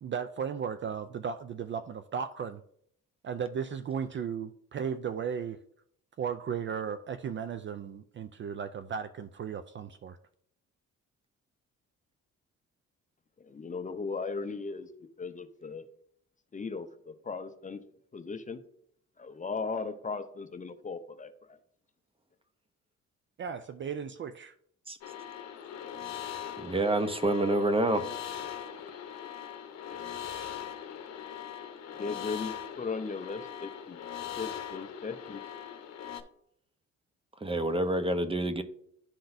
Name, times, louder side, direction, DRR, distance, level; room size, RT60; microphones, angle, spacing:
voice 1, 0.0-2.6 3.2-5.6 6.2-10.2 23.4-24.5, right 7 dB, 40° right, 11 dB, 0.4 m, -35 dB
voice 2, 13.4-14.9 15.2-15.8 16.5-17.8 18.1-18.6 19.2-21.6 32.0-34.0 34.4-35.4, left 4 dB, 25° left, 9 dB, 0.7 m, -37 dB
sound 1, 25.0-36.2, left 9 dB, 60° left, 0.9 m, -41 dB
voice 3, 26.6-28.0 37.4-38.6, right 1 dB, 20° right, 10 dB, 0.8 m, -27 dB
11.5 x 3.8 x 2.6 m, 0.67 s
cardioid pair, 90°, 30 cm